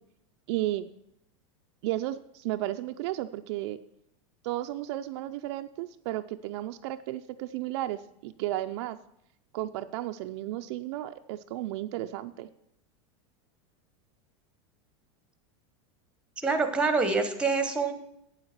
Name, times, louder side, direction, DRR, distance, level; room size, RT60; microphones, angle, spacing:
voice 1, 0.5-0.9 1.8-3.8 4.4-9.0 9.5-12.5, right 15 dB, 55° right, 7 dB, 0.5 m, -33 dB
voice 2, 16.4-17.9, right 4 dB, 5° right, 7 dB, 1.0 m, -26 dB
8.7 x 7.8 x 5.8 m, 0.78 s
supercardioid pair, 160°, 17 cm